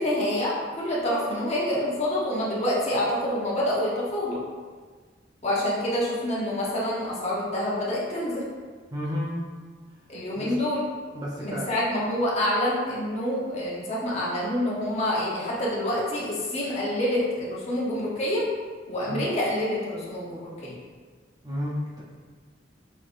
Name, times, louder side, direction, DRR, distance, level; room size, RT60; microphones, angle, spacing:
voice 1, 0.0-4.4 5.4-8.5 10.1-10.9 11.4-18.4 18.9-20.7, left 1 dB, 35° left, -6 dB, 1.1 m, -27 dB
voice 2, 8.9-9.3 10.3-10.5 11.1-11.7 19.1-19.2 21.4-22.0, equal, 20° right, -5 dB, 0.6 m, -31 dB
5.5 x 3.3 x 2.6 m, 1.5 s
head